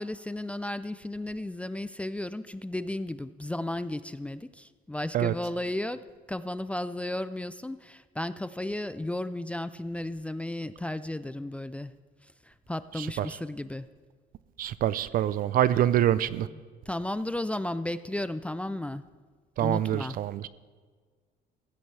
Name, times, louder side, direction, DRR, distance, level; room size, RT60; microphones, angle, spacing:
voice 1, 0.0-6.0 6.3-11.9 12.5-13.9 16.3-19.0 19.6-20.2, left 1 dB, 5° left, 0.4 m, -34 dB
voice 2, 14.6-16.5 19.6-20.5, right 11 dB, 55° right, 0.5 m, -25 dB
15.5 x 15.0 x 3.3 m
cardioid pair, 110°, 17 cm